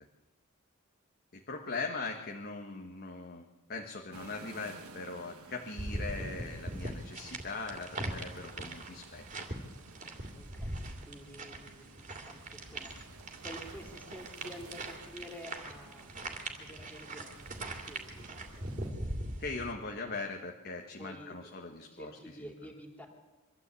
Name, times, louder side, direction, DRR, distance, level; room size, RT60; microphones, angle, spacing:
voice 1, 1.3-3.4 3.7-9.2 19.4-22.7, left 3 dB, 45° left, 2 dB, 1.5 m, -40 dB
sound 1, 4.1-18.9, right 3 dB, 90° right, 1.4 m, -54 dB
sound 2, 5.8-19.7, right 1 dB, 35° right, 2.7 m, -41 dB
voice 2, 10.3-12.9 13.4-16.1 16.6-19.2 20.0-20.1 21.0-21.5 21.9-23.1, equal, 5° left, 1 dB, 3.4 m, -50 dB
24.5 x 13.0 x 8.4 m, 1.2 s
head